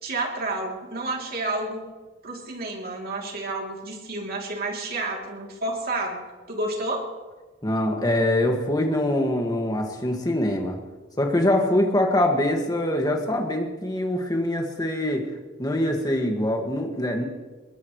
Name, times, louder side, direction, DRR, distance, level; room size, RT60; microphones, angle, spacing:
voice 1, 0.0-1.8 2.2-6.2 6.5-7.1, right 2 dB, 50° right, 0 dB, 3.1 m, -30 dB
voice 2, 7.6-10.8 11.2-15.2 15.6-17.2, left 1 dB, 20° left, 3 dB, 2.0 m, -24 dB
21.5 x 20.5 x 3.2 m, 1.3 s
head